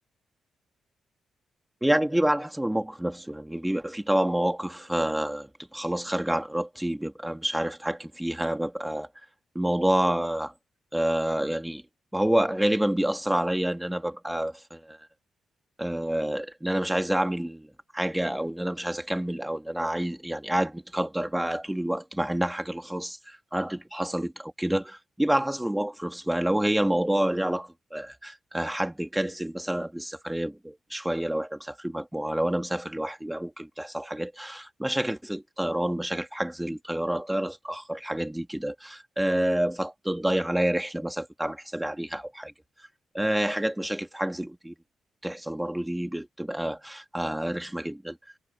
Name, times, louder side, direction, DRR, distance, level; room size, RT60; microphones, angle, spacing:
voice 1, 1.8-9.1 9.5-10.5 10.9-11.8 12.1-15.0 15.8-42.5 43.1-44.7 45.2-48.2, right 1 dB, 10° right, 2.7 m, -28 dB
hypercardioid pair, 45°, 0 cm